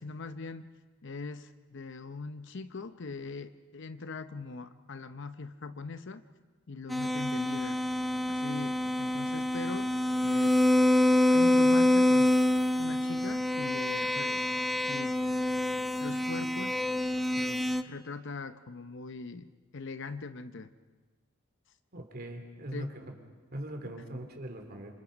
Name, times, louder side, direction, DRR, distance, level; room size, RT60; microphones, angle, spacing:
voice 1, 0.0-6.2 6.7-7.8 8.3-10.0 10.2-10.6 11.3-12.4 12.8-14.4 14.9-15.2 16.0-16.9 17.3-19.5 19.7-20.7 22.7-22.9, left 3 dB, 60° left, 10 dB, 0.8 m, -41 dB
sound 1, 6.9-17.8, left 1 dB, ahead, 0.6 m, -26 dB
voice 2, 21.9-23.1 23.5-24.9, right 1 dB, 45° right, 4 dB, 3.3 m, -41 dB
28.0 x 26.0 x 5.2 m, 1.4 s
head